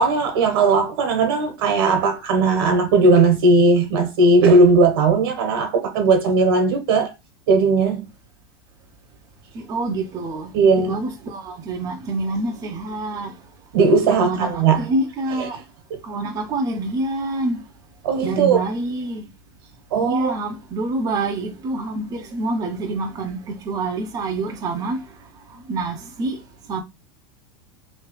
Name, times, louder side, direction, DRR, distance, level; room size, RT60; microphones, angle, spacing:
voice 1, 0.0-7.1 7.5-8.1 10.5-10.9 13.7-14.8 15.4-15.5 18.0-18.6 19.9-20.3, right 3 dB, 75° right, 1.3 m, -17 dB
voice 2, 9.5-13.4 14.2-15.6 16.0-17.6 18.2-19.3 19.9-25.0 25.7-26.4 26.7-26.8, right 2 dB, 30° right, 0.7 m, -26 dB
3.1 x 2.8 x 3.1 m
supercardioid pair, 125°, 12 cm